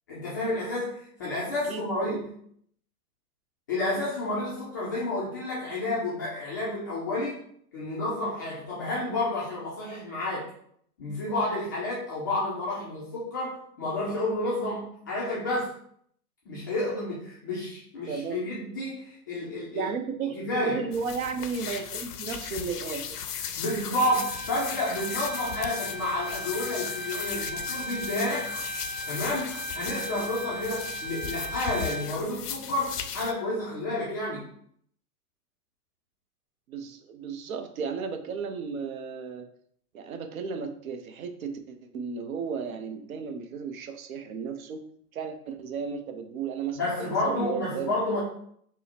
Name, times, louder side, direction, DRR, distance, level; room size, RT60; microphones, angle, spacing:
voice 1, 0.1-2.3 3.7-7.4 7.7-10.5 11.0-15.7 16.5-19.9 20.3-20.8 23.5-28.5 29.1-34.4 46.8-48.2, left 1 dB, 15° left, -8 dB, 0.3 m, -30 dB
voice 2, 1.6-2.2 18.1-18.4 19.7-23.2 36.7-39.5 39.9-44.8 45.1-48.0, right 5 dB, 65° right, 7 dB, 0.7 m, -34 dB
sound 1, 20.9-33.3, left 8 dB, 80° left, 0.6 m, -37 dB
Bowed string instrument, 24.0-32.1, right 2 dB, 20° right, 0.6 m, -37 dB
3.7 x 2.0 x 4.2 m, 0.66 s
hypercardioid pair, 115°, 46 cm